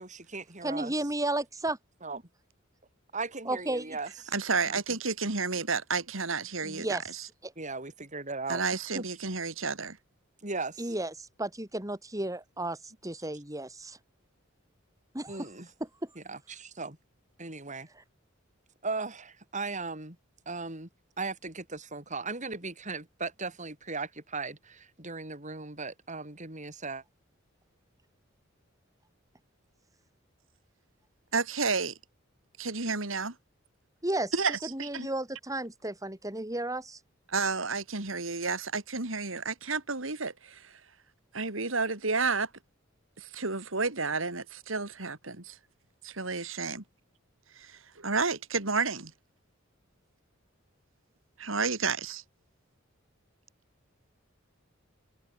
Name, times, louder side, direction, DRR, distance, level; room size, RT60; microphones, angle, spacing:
voice 1, 0.0-1.1 2.0-2.2 3.1-4.3 4.7-4.8 7.6-8.6 8.9-9.0 10.4-11.0 15.3-15.7 16.1-17.0 17.4-17.9 18.8-20.2 20.4-20.9 21.2-27.0, right 3 dB, 35° right, 6.6 m, -37 dB
voice 2, 0.6-1.8 3.5-3.9 6.6-7.0 7.4-7.5 10.8-14.0 15.1-15.3 34.0-34.3 34.7-37.0, right 1 dB, 15° right, 5.2 m, -33 dB
voice 3, 4.3-7.3 8.5-10.0 31.3-32.0 32.6-33.3 34.3-35.1 37.3-40.8 41.3-42.5 43.2-45.6 46.0-46.8 47.5-49.1 51.4-52.2, right 4 dB, 75° right, 3.3 m, -31 dB
head